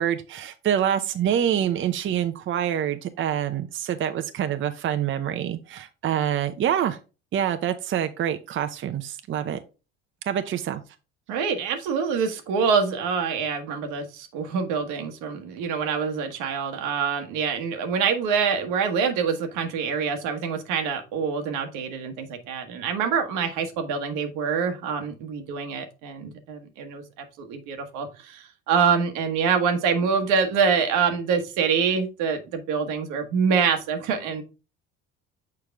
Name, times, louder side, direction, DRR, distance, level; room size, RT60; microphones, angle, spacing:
voice 1, 0.0-7.0 7.3-9.6 10.3-10.8, right 10 dB, 40° right, 9 dB, 0.7 m, -26 dB
voice 2, 11.3-34.4, right 6 dB, 85° right, 6 dB, 1.4 m, -25 dB
6.6 x 4.8 x 3.5 m, 0.31 s
cardioid pair, 100°, 30 cm